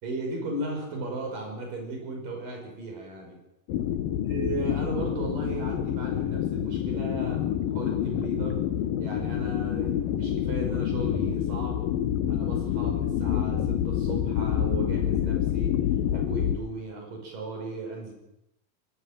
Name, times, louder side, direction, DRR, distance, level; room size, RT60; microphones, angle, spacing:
voice 1, 0.0-3.4 4.3-8.7 9.0-11.8 12.3-15.8 16.1-18.1, right 2 dB, 70° right, 2 dB, 7.5 m, -36 dB
sound 1, 3.7-16.6, left 10 dB, 85° left, 2.9 m, -27 dB
24.0 x 18.0 x 7.7 m, 0.85 s
omnidirectional pair, 4.0 m